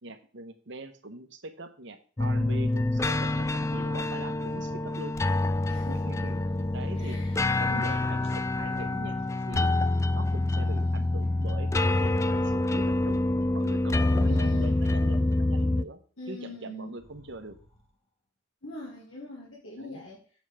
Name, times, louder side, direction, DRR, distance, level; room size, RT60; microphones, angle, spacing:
voice 1, 0.0-5.2 5.9-6.4 6.7-9.2 9.5-9.7 10.1-13.3 13.5-16.0 16.3-17.6 19.8-20.0, right 2 dB, 60° right, 8 dB, 1.1 m, -42 dB
sound 1, 2.2-15.8, left 2 dB, 15° left, 0.3 m, -26 dB
voice 2, 5.7-6.3 7.0-7.4 14.2-14.8 16.2-16.9 18.6-20.2, left 1 dB, 70° left, -4 dB, 1.9 m, -42 dB
sound 2, 6.4-7.0 7.2-7.7 7.9-10.3 10.7-12.7 14.0-15.4 16.9-17.9, equal, 30° left, 1.8 m, -52 dB
7.7 x 7.2 x 4.9 m, 0.42 s
head